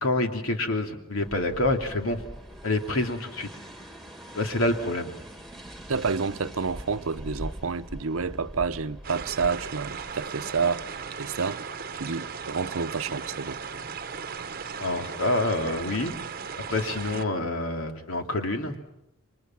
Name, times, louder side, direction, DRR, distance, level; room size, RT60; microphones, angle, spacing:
voice 1, 0.0-2.2 2.6-3.5 4.3-5.1 14.8-16.1 16.7-18.7, left 2 dB, 80° left, 2.8 m, -27 dB
sound 1, 1.2-10.1, equal, ahead, 2.0 m, -43 dB
voice 2, 5.9-11.6 11.9-13.6, right 5 dB, 80° right, 0.8 m, -29 dB
sound 2, 9.0-17.2, right 6 dB, 45° right, 1.0 m, -37 dB
29.0 x 24.5 x 6.0 m
head